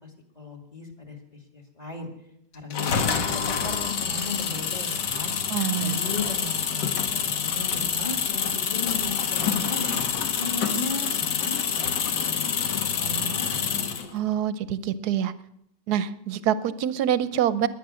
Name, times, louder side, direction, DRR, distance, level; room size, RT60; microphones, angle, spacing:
voice 1, 0.0-2.1 2.5-3.0 3.3-5.3 5.8-10.0 10.4-13.7, left 3 dB, 20° left, 2 dB, 2.1 m, -36 dB
sound 1, 2.7-14.1, left 7 dB, 70° left, 1.9 m, -27 dB
voice 2, 5.5-6.0 14.1-15.3 15.9-17.7, right 10 dB, 65° right, 15 dB, 1.1 m, -25 dB
21.0 x 9.2 x 6.2 m, 0.77 s
omnidirectional pair, 1.9 m